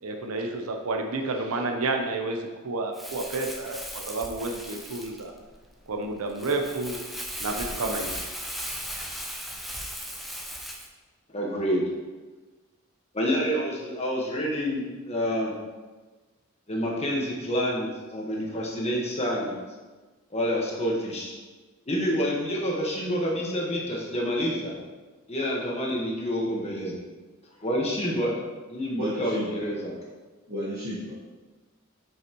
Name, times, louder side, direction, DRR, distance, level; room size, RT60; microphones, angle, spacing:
voice 1, 0.0-5.3 5.9-7.0 7.4-8.2, right 2 dB, 75° right, 3 dB, 0.7 m, -30 dB
Crumpling crinkling, 2.9-10.9, equal, ahead, 0.5 m, -37 dB
voice 2, 11.3-11.8 13.1-15.5 16.7-19.6 20.3-21.3 21.9-24.7 25.3-26.9 27.6-28.3 28.7-29.9, equal, 30° left, -2 dB, 1.3 m, -28 dB
voice 3, 29.0-29.7 30.5-31.1, equal, 45° right, -9 dB, 1.3 m, -32 dB
7.7 x 5.6 x 3.0 m, 1.3 s
head